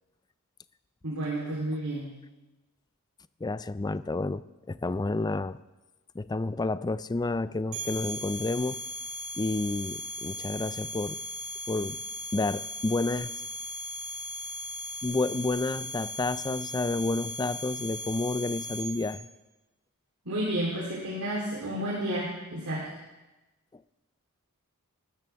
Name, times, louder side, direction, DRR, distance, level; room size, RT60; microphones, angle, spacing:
voice 1, 1.0-2.1 20.3-22.9, right 1 dB, 85° right, -6 dB, 3.4 m, -31 dB
voice 2, 3.4-4.4 4.7-5.6 6.1-8.8 9.4-11.2 11.7-12.0 12.3-13.3 15.0-19.3, left 2 dB, 20° left, 14 dB, 0.4 m, -30 dB
sound 1, 7.7-19.1, left 1 dB, 60° right, 5.1 m, -37 dB
19.5 x 13.5 x 3.5 m, 1.1 s
head